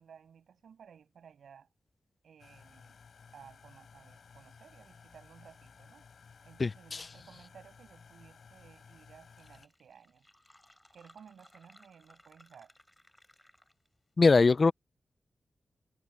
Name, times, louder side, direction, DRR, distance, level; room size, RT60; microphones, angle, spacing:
voice 1, 0.0-1.7 2.2-3.0 3.3-6.0 6.4-10.3 10.9-12.7, right 7 dB, 85° right, 7.7 m, -57 dB
sound 1, 2.4-9.7, left 6 dB, 65° left, 7.4 m, -57 dB
Fill (with liquid), 9.2-14.0, left 1 dB, 10° left, 7.6 m, -62 dB
voice 2, 14.2-14.7, left 4 dB, 40° left, 0.3 m, -21 dB
wide cardioid pair, 105°, 0 cm